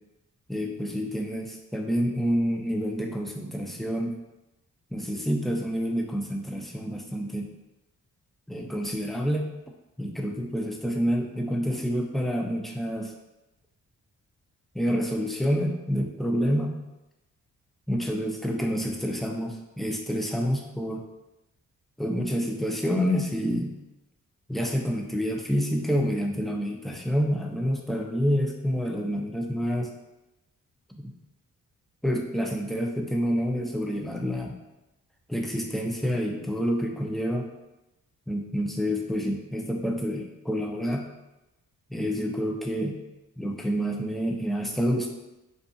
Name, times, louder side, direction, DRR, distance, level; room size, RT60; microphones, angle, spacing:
voice 1, 0.5-4.2 4.9-7.5 8.5-9.5 10.0-13.1 14.7-16.8 17.9-21.0 22.0-23.8 24.5-29.9 31.0-31.2 32.0-34.6 35.3-37.5 38.3-41.1 41.9-43.0 43.4-45.1, equal, ahead, 1 dB, 0.4 m, -28 dB
2.5 x 2.5 x 2.2 m, 0.96 s
supercardioid pair, 50°, 33 cm